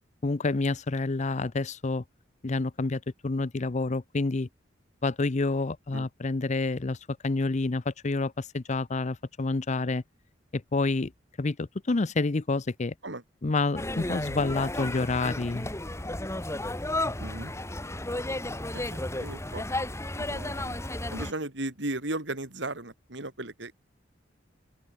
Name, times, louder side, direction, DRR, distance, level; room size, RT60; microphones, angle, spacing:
voice 1, 0.2-2.0 2.4-4.5 5.0-7.0 7.2-10.0 10.5-11.1 11.4-12.9 13.4-15.7, left 3 dB, 40° left, 0.6 m, -28 dB
sound 1, 13.8-21.3, left 1 dB, 15° left, 2.7 m, -33 dB
voice 2, 17.2-17.5 18.9-19.7 20.3-20.8 21.1-23.8, right 2 dB, 65° right, 3.6 m, -36 dB
open air
head